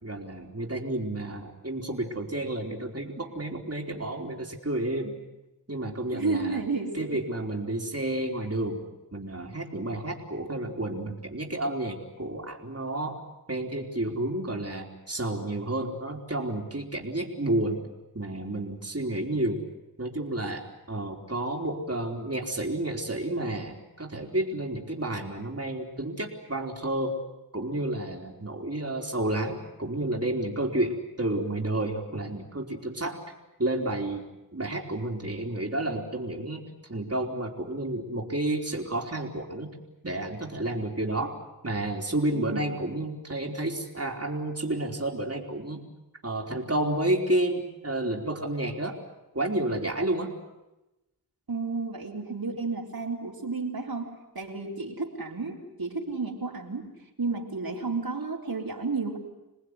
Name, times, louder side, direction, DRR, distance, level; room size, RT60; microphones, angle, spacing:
voice 1, 0.0-5.1 5.7-6.6 6.9-8.8 9.1-13.2 13.5-17.8 18.1-19.6 20.0-27.2 27.5-33.2 33.6-34.3 34.5-36.6 36.9-39.7 40.0-41.4 41.6-45.9 46.2-49.0 49.3-50.3, right 1 dB, 40° right, 0 dB, 3.8 m, -30 dB
voice 2, 6.1-7.2 42.3-42.7 51.5-56.9 57.2-59.2, right 4 dB, 65° right, -1 dB, 4.2 m, -32 dB
27.5 x 19.5 x 9.7 m, 0.97 s
wide cardioid pair, 40°, 39 cm